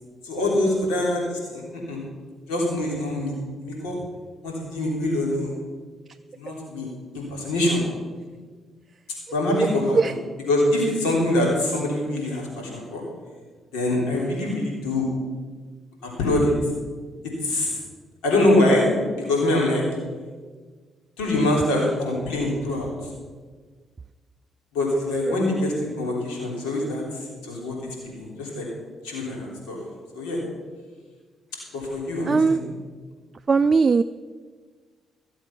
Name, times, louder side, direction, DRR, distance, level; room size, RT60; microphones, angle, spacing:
voice 1, 0.2-2.0 2.5-3.4 3.6-4.0 4.4-5.5 6.4-6.9 7.1-7.8 9.3-10.1 10.5-13.0 13.7-15.0 16.0-16.7 17.2-17.8 18.2-19.8 21.2-23.1 24.7-27.8 28.0-28.7 29.0-29.8 30.1-30.4 31.7-32.7, left 1 dB, 85° left, -2 dB, 3.5 m, -24 dB
voice 2, 32.3-32.6 33.5-34.0, right 4 dB, 40° right, 10 dB, 0.4 m, -18 dB
15.0 x 7.6 x 6.1 m, 1.5 s
supercardioid pair, 50°, 0 cm